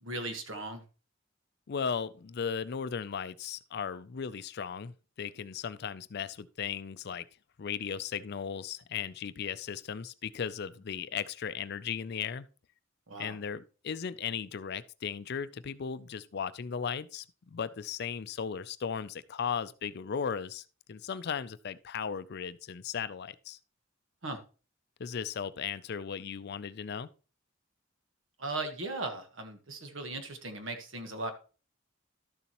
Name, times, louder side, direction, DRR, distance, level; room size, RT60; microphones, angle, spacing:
voice 1, 0.0-0.8 13.1-13.4 24.2-24.4 28.4-31.3, right 2 dB, 70° right, 1.4 m, -37 dB
voice 2, 1.7-7.3 7.6-12.5 13.2-23.6 25.0-27.1, left 7 dB, 55° left, 0.4 m, -36 dB
12.5 x 6.9 x 3.0 m
head